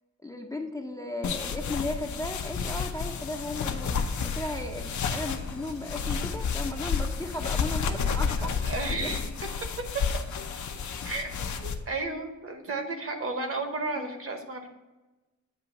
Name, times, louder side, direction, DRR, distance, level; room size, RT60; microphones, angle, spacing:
voice 1, 0.2-4.0 4.2-8.5 14.0-14.1, left 2 dB, 10° left, 3 dB, 0.4 m, -35 dB
sound 1, 1.2-11.7, left 5 dB, 80° left, 0.6 m, -31 dB
Alarm, 4.3-12.0, right 3 dB, 85° right, 1.3 m, -50 dB
voice 2, 8.4-9.3 11.0-14.7, right 2 dB, 50° right, 5 dB, 1.0 m, -33 dB
8.3 x 2.9 x 5.6 m, 1.1 s
wide cardioid pair, 170°, 29 cm